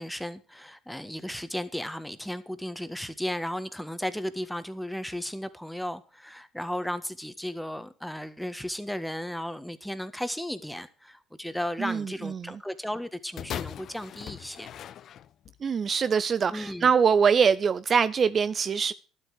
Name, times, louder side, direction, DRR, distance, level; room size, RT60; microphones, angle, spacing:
voice 1, 0.0-14.7 16.5-16.9, equal, 5° left, 1.5 m, -35 dB
voice 2, 11.8-12.5 15.6-18.9, right 6 dB, 40° right, 0.6 m, -23 dB
sound 1, 13.4-15.6 16.4-16.5, left 10 dB, 60° left, 0.6 m, -39 dB
12.0 x 8.2 x 6.6 m
supercardioid pair, 70°, 0 cm